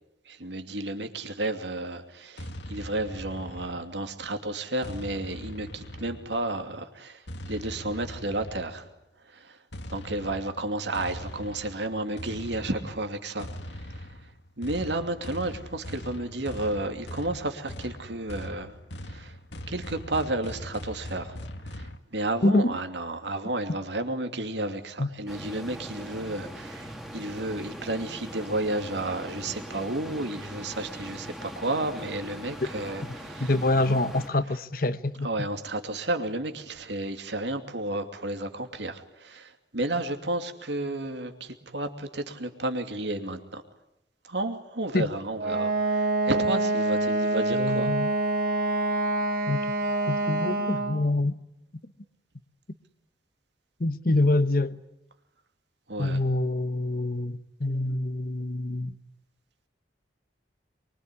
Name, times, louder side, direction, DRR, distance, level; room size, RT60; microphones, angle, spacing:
voice 1, 0.2-8.9 9.2-9.6 9.9-14.2 14.6-18.7 19.0-19.4 19.7-21.4 21.6-33.5 35.2-43.6 44.2-47.9 55.9-56.2, right 2 dB, 75° right, 6 dB, 2.7 m, -32 dB
sound 1, 2.4-4.1 4.8-6.5 7.3-8.9 9.7-22.0, equal, 75° left, 2.1 m, -41 dB
voice 2, 22.4-22.7 25.0-25.1 33.4-35.3 44.9-45.1 47.5-48.1 49.5-49.6 50.1-51.3 53.8-54.8 56.0-58.9, left 2 dB, 50° left, 12 dB, 1.1 m, -26 dB
sound 2, 25.3-34.3, equal, ahead, 2.5 m, -41 dB
Wind instrument woodwind instrument, 45.4-51.1, right 2 dB, 50° right, 4.2 m, -26 dB
25.0 x 23.5 x 9.9 m, 0.86 s
head